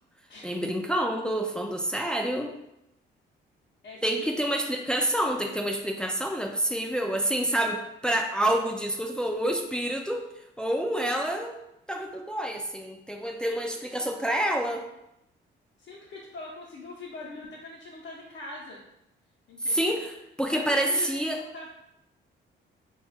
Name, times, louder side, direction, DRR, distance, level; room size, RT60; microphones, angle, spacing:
voice 1, 0.4-2.5 4.0-10.2 10.6-11.5 11.9-14.8 19.7-20.1 20.4-21.4, right 1 dB, 5° left, 2 dB, 0.4 m, -28 dB
voice 2, 3.8-4.4 13.5-13.6 14.0-14.1 15.8-18.8 19.5-20.0 20.4-21.7, left 3 dB, 60° left, -4 dB, 0.7 m, -42 dB
2.8 x 2.3 x 4.1 m, 0.85 s
cardioid pair, 90°, 20 cm